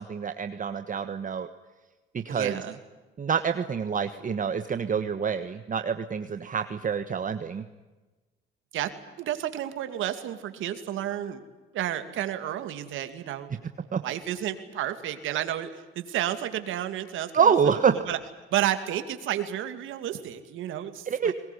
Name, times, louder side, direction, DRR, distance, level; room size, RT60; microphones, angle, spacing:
voice 1, 0.0-1.5 2.1-2.6 3.2-7.6 13.9-14.0 17.3-17.9 21.1-21.3, right 7 dB, 40° right, 9 dB, 1.3 m, -26 dB
voice 2, 2.3-2.8 8.7-8.9 9.2-11.4 11.7-13.5 14.0-17.8 18.1-18.2 18.5-21.3, right 11 dB, 85° right, 9 dB, 2.5 m, -31 dB
22.0 x 20.5 x 9.9 m, 1.2 s
cardioid pair, 90°, 20 cm